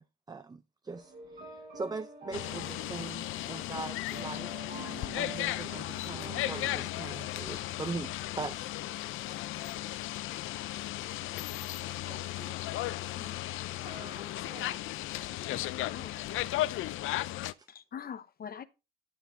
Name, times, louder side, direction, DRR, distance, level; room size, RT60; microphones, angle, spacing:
voice 1, 0.0-4.7 5.2-8.8 9.2-9.4 16.6-16.7 17.6-17.7, right 4 dB, 20° right, 0.5 m, -41 dB
sound 1, 0.9-6.9, right 3 dB, 60° right, 5.7 m, -47 dB
sound 2, 2.3-17.5, left 15 dB, 85° left, 0.5 m, -35 dB
voice 2, 11.7-12.6 13.8-14.8, right 3 dB, 40° right, 2.0 m, -52 dB
voice 3, 15.3-16.1 17.7-18.6, left 7 dB, 50° left, 0.9 m, -44 dB
13.0 x 7.0 x 2.7 m
cardioid pair, 90°, 20 cm